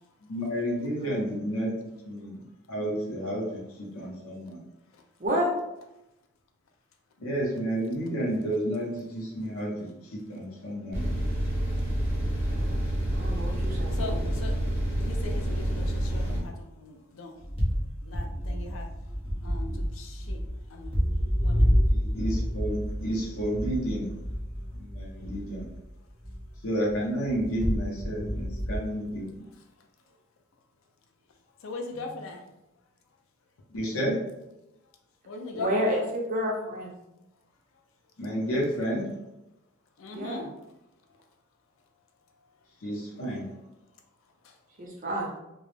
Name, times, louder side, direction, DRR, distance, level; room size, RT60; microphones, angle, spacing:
voice 1, 0.3-2.4 2.7-4.6 7.2-9.7 10.1-11.1 21.9-24.1 24.7-25.7 26.6-29.2 33.7-34.2 38.2-39.1 42.8-43.5, equal, 90° left, -3 dB, 0.8 m, -31 dB
voice 2, 5.2-5.5 12.4-12.8 13.1-14.3 31.9-32.1 35.5-36.9 40.1-40.4 44.8-45.3, equal, 40° right, -2 dB, 0.5 m, -30 dB
sound 1, 10.9-16.4, right 1 dB, 10° right, 0.9 m, -28 dB
sound 2, 11.8-13.6 13.9-14.5 14.9-15.0 17.4-25.9 26.2-29.2, equal, 25° left, 0.6 m, -30 dB
voice 3, 13.9-14.5 15.0-17.3 18.0-18.9 19.4-20.4 20.7-20.9 21.4-21.7 31.6-32.4 35.3-36.0 40.0-40.5, left 3 dB, 75° left, 3 dB, 0.4 m, -39 dB
2.3 x 2.0 x 3.1 m, 0.91 s
head